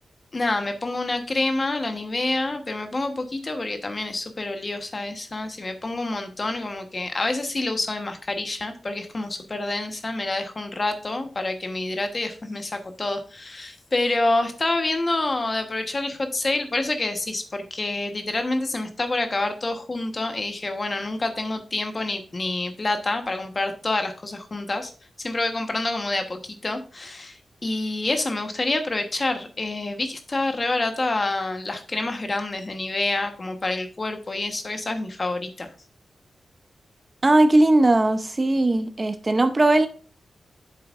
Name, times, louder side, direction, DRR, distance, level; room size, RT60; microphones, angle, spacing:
voice 1, 0.3-24.9 25.2-35.7, left 2 dB, 35° left, 6 dB, 1.1 m, -27 dB
voice 2, 37.2-39.9, right 2 dB, 30° right, 9 dB, 0.7 m, -18 dB
8.8 x 7.1 x 2.5 m, 0.39 s
wide cardioid pair, 95°, 0 cm